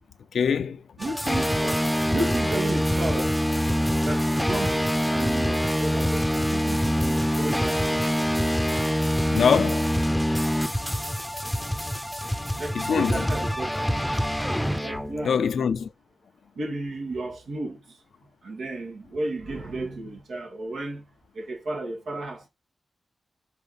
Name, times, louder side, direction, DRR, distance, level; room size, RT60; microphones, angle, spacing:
voice 1, 0.3-0.8 9.3-9.9 12.7-13.2 15.2-15.9, left 6 dB, 85° left, 0.5 m, -23 dB
sound 1, 1.0-15.3, equal, 5° left, 0.7 m, -25 dB
voice 2, 1.0-1.8 2.1-3.4 4.0-8.1 12.6-13.9 14.8-15.4 16.6-18.0 18.4-21.0 21.3-22.5, right 2 dB, 90° right, 2.2 m, -33 dB
5.9 x 3.6 x 5.5 m
cardioid pair, 50°, 0 cm